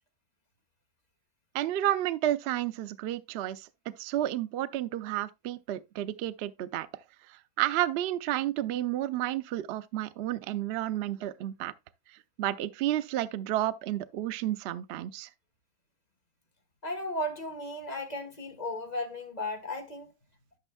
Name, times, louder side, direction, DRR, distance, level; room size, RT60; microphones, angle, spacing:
voice 1, 1.5-3.7 4.0-6.9 7.3-11.7 12.4-15.3, right 13 dB, 85° right, 0.5 m, -31 dB
voice 2, 16.8-20.1, left 1 dB, 30° left, 1.3 m, -35 dB
12.5 x 6.1 x 2.2 m
omnidirectional pair, 1.7 m